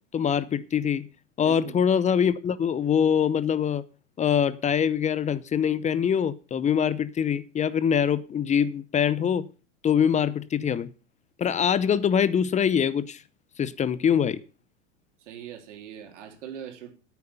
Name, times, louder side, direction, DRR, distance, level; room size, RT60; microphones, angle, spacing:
voice 1, 0.1-1.1 1.4-3.8 4.2-9.5 9.8-10.9 11.4-13.2 13.6-14.4, left 8 dB, 20° left, 0.7 m, -24 dB
voice 2, 1.4-1.8 15.2-16.9, right 9 dB, 70° right, 3.2 m, -41 dB
9.5 x 9.0 x 6.9 m
hypercardioid pair, 100°, 37 cm